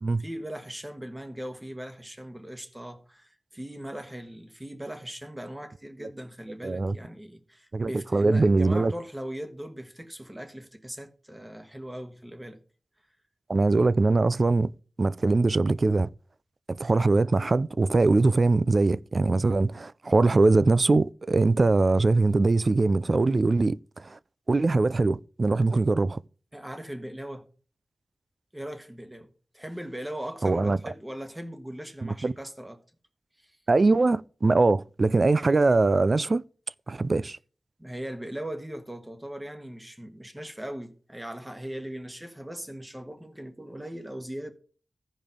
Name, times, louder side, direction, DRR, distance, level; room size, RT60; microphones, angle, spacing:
voice 1, 0.2-12.6 26.5-27.5 28.5-32.8 33.4-33.5 37.8-44.5, right 1 dB, 15° right, 1.4 m, -39 dB
voice 2, 6.6-7.0 7.7-8.9 13.5-14.7 15.0-16.1 16.7-24.2 24.5-26.2 30.4-30.9 32.0-32.3 33.7-36.4 36.9-37.4, right 3 dB, 45° right, 0.3 m, -22 dB
15.5 x 5.2 x 3.7 m
wide cardioid pair, 80°, 0 cm